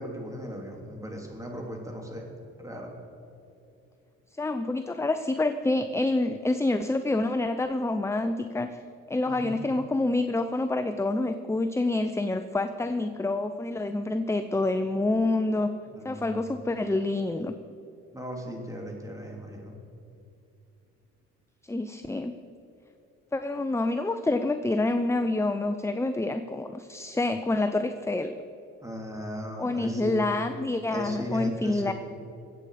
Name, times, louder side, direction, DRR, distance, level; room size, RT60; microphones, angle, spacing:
voice 1, 0.0-2.3 2.6-2.9 9.3-9.5 15.9-16.5 18.1-19.8 28.8-30.1 30.9-31.9, equal, 10° right, 0 dB, 3.0 m, -37 dB
voice 2, 4.4-8.8 9.1-15.7 16.0-17.5 21.6-22.4 23.3-28.3 29.6-31.9, left 2 dB, 10° left, 9 dB, 0.5 m, -27 dB
21.5 x 8.4 x 5.0 m, 2.7 s
cardioid pair, 90°, 30 cm